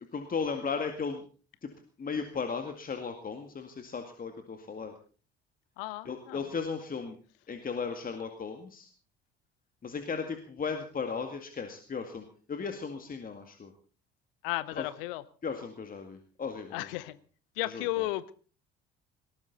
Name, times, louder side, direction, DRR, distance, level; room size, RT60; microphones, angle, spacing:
voice 1, 0.1-1.2 1.6-1.7 2.0-4.9 6.0-7.2 7.5-8.9 9.8-13.7 14.7-14.9 15.4-16.9 17.6-18.1, left 5 dB, 30° left, 6 dB, 2.1 m, -36 dB
voice 2, 5.8-6.4 14.4-15.2 16.7-17.2 17.6-18.3, left 17 dB, 65° left, 18 dB, 1.0 m, -34 dB
19.5 x 18.5 x 4.1 m, 0.39 s
figure-of-eight pair, 55°, 30 cm